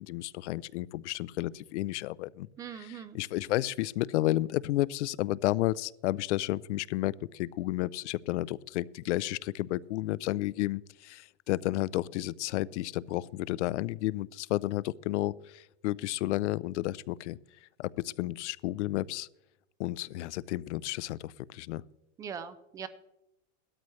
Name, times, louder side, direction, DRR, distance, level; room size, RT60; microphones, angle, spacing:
voice 1, 0.0-2.5 3.1-17.4 17.8-19.3 19.8-21.8, left 16 dB, 80° left, 20 dB, 0.6 m, -32 dB
voice 2, 2.6-3.2 22.2-22.9, right 7 dB, 10° right, 14 dB, 0.3 m, -41 dB
17.5 x 13.0 x 3.1 m, 0.89 s
supercardioid pair, 160°, 34 cm